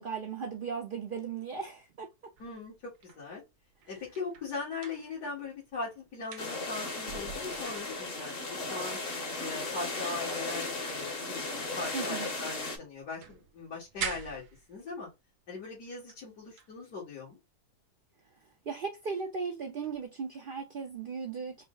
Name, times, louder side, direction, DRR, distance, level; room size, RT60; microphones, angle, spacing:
voice 1, 0.0-2.3 11.9-12.3 18.7-21.6, right 5 dB, 60° right, 0.5 m, -37 dB
voice 2, 2.4-3.4 3.9-9.0 9.4-15.1 15.5-17.4, left 3 dB, 80° left, 2.1 m, -40 dB
sound 1, 2.4-5.7 6.0-8.4 8.9-9.0 9.2-12.6 12.9-15.1 15.9-16.3 16.6-16.8 19.8-20.0, right 7 dB, 85° right, 1.3 m, -45 dB
sound 2, 6.4-12.8, left 3 dB, 45° left, 1.0 m, -36 dB
4.3 x 2.0 x 3.7 m
omnidirectional pair, 1.6 m